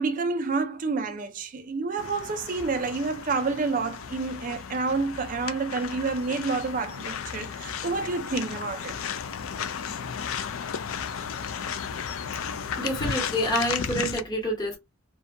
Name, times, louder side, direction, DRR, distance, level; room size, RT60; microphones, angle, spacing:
voice 1, 0.0-9.0, right 4 dB, 40° right, 0.4 m, -29 dB
sound 1, 2.0-14.2, left 7 dB, 75° left, 0.4 m, -34 dB
voice 2, 12.8-14.8, equal, 20° left, 1.0 m, -27 dB
2.6 x 2.2 x 2.5 m
head